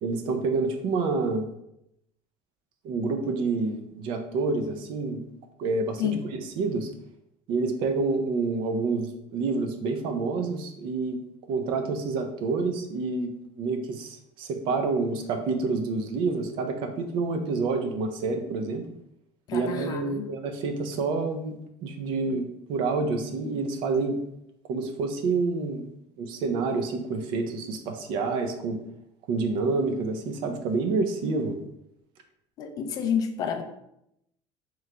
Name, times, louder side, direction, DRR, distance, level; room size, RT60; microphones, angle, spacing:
voice 1, 0.0-1.5 2.8-5.3 5.6-6.9 7.5-11.2 11.5-18.8 19.5-21.5 21.8-24.2 24.7-25.9 26.2-28.8 29.3-31.6, right 3 dB, 50° right, 6 dB, 0.5 m, -28 dB
voice 2, 19.5-20.3 32.6-33.6, left 8 dB, 35° left, 6 dB, 0.4 m, -29 dB
3.7 x 3.1 x 3.3 m, 0.80 s
cardioid pair, 170°, 11 cm